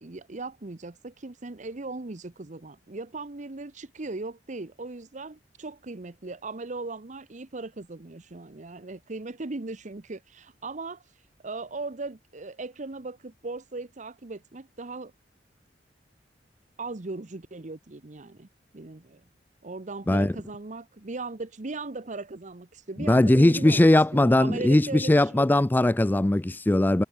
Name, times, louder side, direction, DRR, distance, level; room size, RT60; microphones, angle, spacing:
voice 1, 0.0-11.0 11.4-15.1 16.8-18.5 18.7-19.2 19.6-25.5, right 3 dB, 45° right, 0.9 m, -38 dB
voice 2, 23.0-27.0, left 1 dB, 10° left, 0.3 m, -20 dB
head